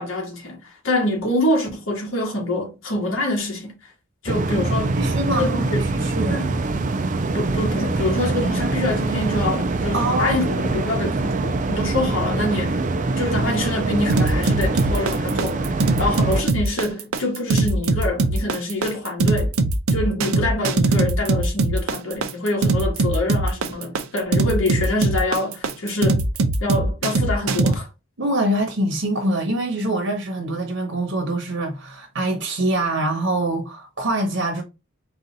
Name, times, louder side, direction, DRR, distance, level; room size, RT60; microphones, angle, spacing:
voice 1, 0.0-3.7 4.2-5.0 5.3-5.8 6.3-6.5 7.3-12.8 13.2-15.7 16.0-19.5 19.9-26.3 26.6-27.9, left 1 dB, 70° left, 1.4 m, -25 dB
sound 1, 4.3-16.4, right 3 dB, 35° right, 0.4 m, -24 dB
voice 2, 5.0-5.5 5.8-6.4 9.9-10.8 28.2-34.6, right 1 dB, 65° right, 0.9 m, -24 dB
sound 2, 14.1-27.7, right 2 dB, 80° right, 0.6 m, -20 dB
4.0 x 2.4 x 4.0 m
head